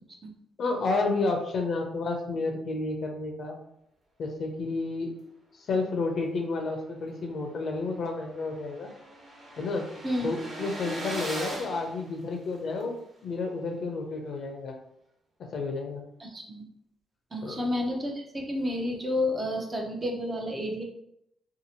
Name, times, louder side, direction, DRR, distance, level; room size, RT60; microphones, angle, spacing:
voice 1, 0.6-3.6 4.2-5.1 5.7-8.9 9.6-9.9 10.2-13.0 13.2-14.8 15.4-16.0 17.4-17.6, left 3 dB, 60° left, 3 dB, 0.6 m, -31 dB
sound 1, 7.2-7.3 7.7-7.8 7.9-12.8, right 1 dB, 45° right, 1.2 m, -39 dB
voice 2, 16.2-16.6 17.3-20.8, left 1 dB, 25° right, 1 dB, 0.6 m, -30 dB
2.7 x 2.4 x 2.8 m, 0.75 s
cardioid pair, 90°, 0 cm